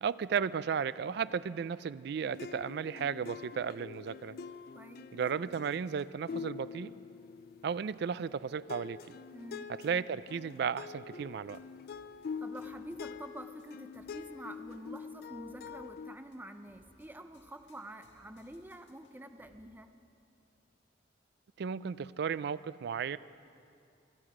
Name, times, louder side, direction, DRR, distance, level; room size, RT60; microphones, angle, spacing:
voice 1, 0.0-4.4 5.1-6.9 7.6-9.2 9.8-11.6 21.6-23.2, right 6 dB, 65° right, 17 dB, 0.3 m, -34 dB
sound 1, 2.2-8.3 8.7-16.2, left 5 dB, 55° left, 0.4 m, -45 dB
voice 2, 4.7-5.1 9.3-9.7 12.4-19.9, right 1 dB, 10° right, 8 dB, 0.6 m, -47 dB
sound 2, 11.5-19.7, left 1 dB, 80° left, 1.8 m, -66 dB
27.0 x 9.6 x 4.9 m, 2.5 s
head